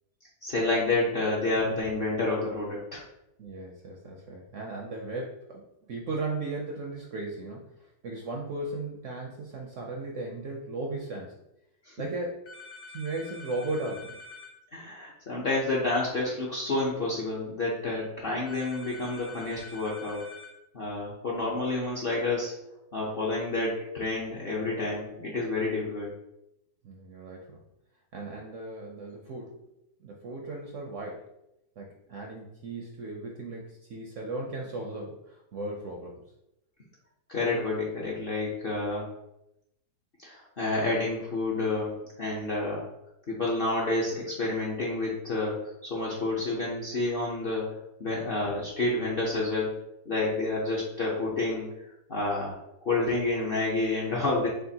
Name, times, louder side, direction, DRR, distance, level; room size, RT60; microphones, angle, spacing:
voice 1, 0.4-3.0 11.8-11.9 14.7-20.3 20.7-22.6 22.9-26.1 37.3-39.1 40.2-41.9 42.2-42.9 43.3-47.7 48.0-49.8 50.1-51.7 52.1-52.6 52.8-54.5, left 2 dB, 50° left, -5 dB, 0.7 m, -29 dB
voice 2, 3.4-11.4 12.0-12.4 12.9-14.2 26.8-27.6 28.1-29.6 30.0-31.3 31.8-36.2 48.3-48.4, right 2 dB, 65° right, 0 dB, 0.8 m, -36 dB
Electronic Phone Ringer, 12.5-14.5 18.5-20.5, left 3 dB, 65° left, 1.3 m, -46 dB
6.4 x 2.4 x 2.8 m, 0.85 s
omnidirectional pair, 1.8 m